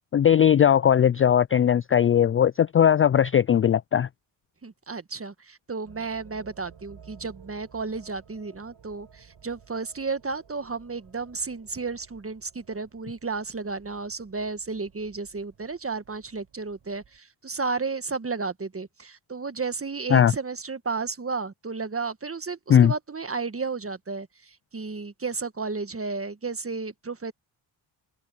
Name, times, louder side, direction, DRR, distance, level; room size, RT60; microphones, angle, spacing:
voice 1, 0.1-4.1 20.1-20.3 22.7-22.9, left 9 dB, 30° left, 0.3 m, -19 dB
voice 2, 4.6-27.3, right 4 dB, 25° right, 1.6 m, -33 dB
sound 1, 5.8-17.2, right 7 dB, 60° right, 5.9 m, -54 dB
open air
supercardioid pair, 50°, 49 cm